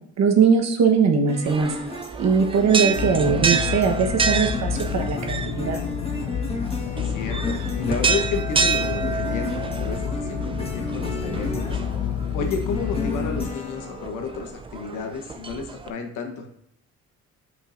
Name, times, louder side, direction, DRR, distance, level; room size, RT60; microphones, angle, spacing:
voice 1, 0.2-1.7 2.2-5.8, right 6 dB, 60° right, 3 dB, 1.1 m, -20 dB
sound 1, 1.3-14.5, left 2 dB, 20° left, 1.4 m, -35 dB
sound 2, 1.5-15.9, right 5 dB, 20° right, 0.3 m, -29 dB
sound 3, 2.9-13.5, left 8 dB, 60° left, 0.5 m, -29 dB
voice 2, 6.9-11.8 12.3-16.5, left 4 dB, 90° left, 4 dB, 1.1 m, -31 dB
8.3 x 5.4 x 2.6 m, 0.73 s
cardioid pair, 90°, 30 cm